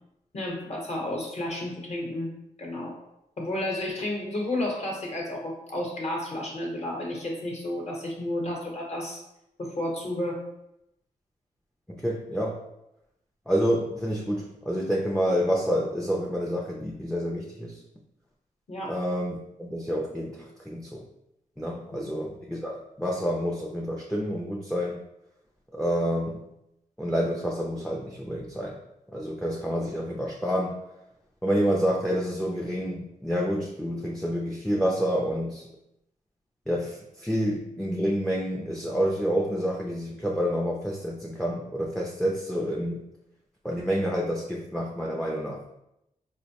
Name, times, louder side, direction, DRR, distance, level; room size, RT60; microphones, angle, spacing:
voice 1, 0.3-2.3 2.6-3.0 3.4-9.2 9.6-10.5 18.7-18.9 21.9-22.1, left 1 dB, 45° left, -1 dB, 0.8 m, -32 dB
voice 2, 11.9-12.6 13.5-17.8 18.9-21.0 21.6-25.0 25.7-26.4 27.0-28.7 29.1-30.7 31.4-35.6 36.7-43.0 43.6-45.6, equal, 5° left, -2 dB, 0.4 m, -28 dB
4.3 x 2.1 x 2.8 m, 0.84 s
wide cardioid pair, 115°, 15 cm